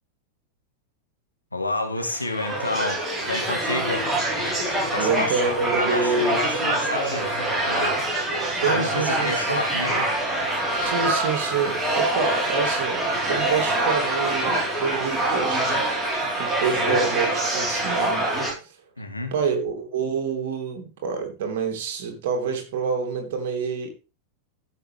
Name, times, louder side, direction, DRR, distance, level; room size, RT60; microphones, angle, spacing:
voice 1, 1.5-4.1 4.9-8.0 8.6-10.1 19.0-19.3, left 2 dB, 85° left, 2.0 m, -30 dB
sound 1, 2.0-18.5, right 1 dB, 10° right, 4.6 m, -25 dB
voice 2, 5.0-6.5 8.5-9.6 10.7-15.8 16.4-18.8 19.3-23.9, right 5 dB, 55° right, 3.2 m, -27 dB
14.5 x 6.5 x 3.6 m
figure-of-eight pair, 90°, 0 cm